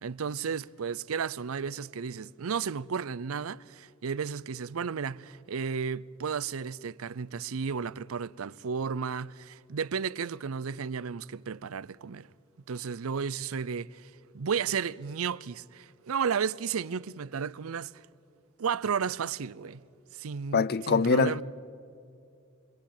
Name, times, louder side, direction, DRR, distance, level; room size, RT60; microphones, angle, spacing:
voice 1, 0.0-12.3 12.7-18.0 18.6-19.8 20.1-21.4, right 6 dB, 85° right, 0.6 m, -33 dB
voice 2, 20.5-21.4, left 4 dB, 50° left, 0.6 m, -24 dB
29.0 x 22.5 x 8.6 m
head